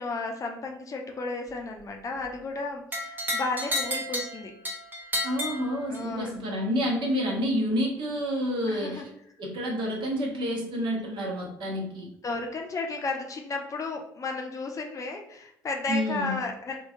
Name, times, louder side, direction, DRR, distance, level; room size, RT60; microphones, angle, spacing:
voice 1, 0.0-4.5 5.9-6.3 8.7-9.0 12.2-16.8, left 3 dB, 35° left, 2 dB, 0.6 m, -33 dB
sound 1, 2.9-6.3, left 1 dB, 20° right, 0.8 m, -32 dB
voice 2, 5.2-9.1 9.4-12.1 15.9-16.4, equal, 50° right, -1 dB, 1.0 m, -29 dB
3.6 x 3.0 x 2.5 m, 0.73 s
figure-of-eight pair, 50°, 10 cm